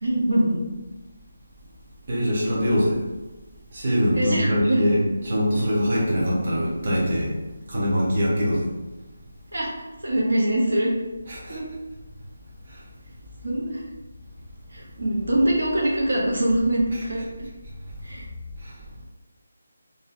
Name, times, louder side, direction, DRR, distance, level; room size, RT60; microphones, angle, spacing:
voice 1, 0.0-0.6 4.1-4.8 9.5-9.7 10.0-10.9 11.5-11.6 13.4-13.8 14.7-17.5 18.0-18.2, right 1 dB, 80° right, -3 dB, 0.5 m, -23 dB
voice 2, 2.1-3.0 3.7-7.3 7.7-8.7 11.3-11.6 12.7-12.8 18.6-18.7, equal, 40° right, -5 dB, 0.7 m, -23 dB
2.5 x 2.0 x 2.4 m, 1.1 s
figure-of-eight pair, 170°, 0 cm